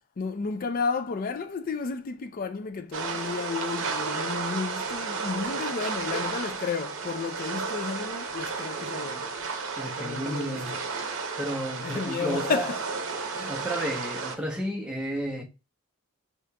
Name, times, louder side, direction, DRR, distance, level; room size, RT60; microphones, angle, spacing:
voice 1, 0.2-9.3 10.0-10.8 11.8-12.9 13.3-13.5, left 5 dB, 40° left, 0.4 m, -32 dB
sound 1, 2.9-14.3, right 4 dB, 60° right, 0.7 m, -33 dB
voice 2, 9.8-10.8 11.4-12.7 13.5-15.4, equal, 5° right, 0.7 m, -32 dB
4.9 x 2.9 x 2.2 m
head